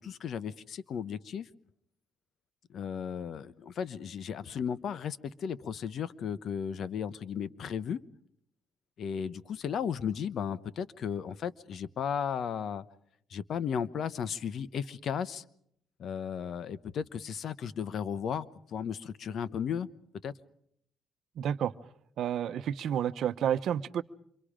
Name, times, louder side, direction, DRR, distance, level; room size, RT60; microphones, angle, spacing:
voice 1, 0.0-1.5 2.7-8.0 9.0-12.8 13.3-15.4 16.0-19.9 20.2-20.3, left 7 dB, 65° left, 16 dB, 0.9 m, -35 dB
voice 2, 21.4-21.7 22.2-24.0, right 9 dB, 70° right, 12 dB, 0.8 m, -30 dB
27.0 x 24.5 x 5.1 m, 0.71 s
cardioid pair, 90°, 0 cm